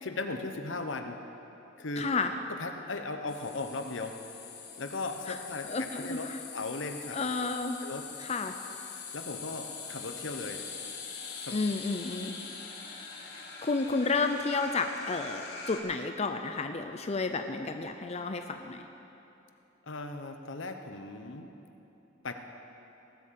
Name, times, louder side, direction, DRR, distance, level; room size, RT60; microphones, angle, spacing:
voice 1, 0.0-1.2 1.8-2.2 2.5-4.2 4.8-7.2 7.8-8.1 9.1-10.6 11.4-11.5 19.9-21.5 22.2-22.3, left 3 dB, 75° left, 6 dB, 1.0 m, -37 dB
voice 2, 2.0-2.3 5.6-6.4 7.1-7.8 8.2-8.5 11.5-12.4 13.6-18.8, left 3 dB, 35° left, 6 dB, 0.5 m, -31 dB
sound 1, 3.3-15.8, left 5 dB, 60° left, 1.8 m, -43 dB
18.5 x 8.4 x 7.6 m, 3.0 s
head